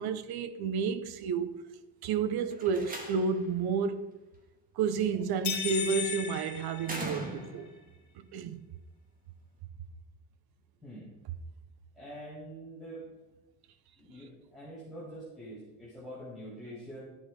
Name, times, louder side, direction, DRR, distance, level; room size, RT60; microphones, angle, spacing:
voice 1, 0.0-1.7 2.0-4.0 4.7-7.7 8.2-8.6, right 6 dB, 75° right, 1.0 m, -31 dB
Slam, 2.5-3.5 5.0-5.5 6.8-7.8, right 2 dB, 20° right, 2.5 m, -40 dB
sound 1, 5.4-7.6, left 8 dB, 45° left, 2.7 m, -36 dB
voice 2, 10.8-11.1 11.9-13.1 14.0-17.0, right 1 dB, ahead, 6.1 m, -45 dB
15.0 x 10.5 x 5.3 m
cardioid pair, 155°, 38 cm